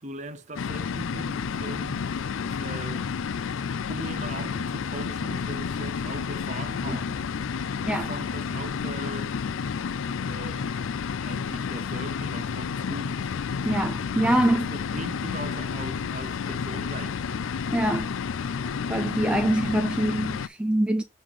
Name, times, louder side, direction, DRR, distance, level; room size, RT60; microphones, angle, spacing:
voice 1, 0.0-2.1 2.5-3.1 3.9-7.3 7.8-9.4 10.2-10.9 11.2-13.3 14.2-17.4, right 1 dB, 35° right, 0.8 m, -40 dB
sound 1, 0.6-20.5, left 6 dB, 80° left, 0.4 m, -31 dB
voice 2, 13.6-14.7 17.7-18.1 18.9-21.0, right 1 dB, 5° right, 0.3 m, -24 dB
7.5 x 3.3 x 5.1 m
head